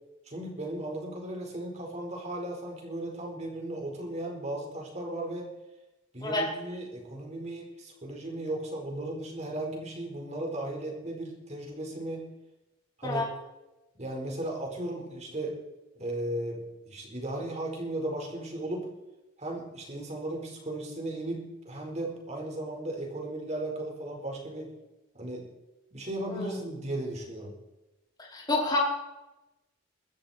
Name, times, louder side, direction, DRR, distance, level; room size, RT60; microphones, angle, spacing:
voice 1, 0.3-5.5 6.1-12.2 13.0-13.2 14.0-15.6 15.9-18.9 19.4-24.7 25.1-25.5 25.9-27.5, right 1 dB, 35° right, 1 dB, 4.7 m, -36 dB
voice 2, 28.2-28.8, left 2 dB, 20° left, -3 dB, 4.7 m, -29 dB
23.5 x 13.5 x 4.4 m, 1.0 s
head